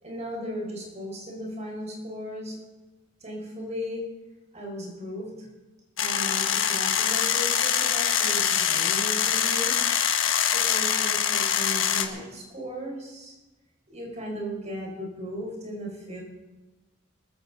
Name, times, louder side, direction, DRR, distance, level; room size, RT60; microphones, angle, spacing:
voice 1, 0.0-2.6 3.2-4.0 4.5-5.5 6.0-9.7 10.5-13.3 13.9-16.2, equal, 35° right, -1 dB, 5.0 m, -36 dB
sound 1, 6.0-12.1, left 8 dB, 70° left, 1.3 m, -24 dB
20.5 x 14.5 x 4.0 m, 1.1 s
head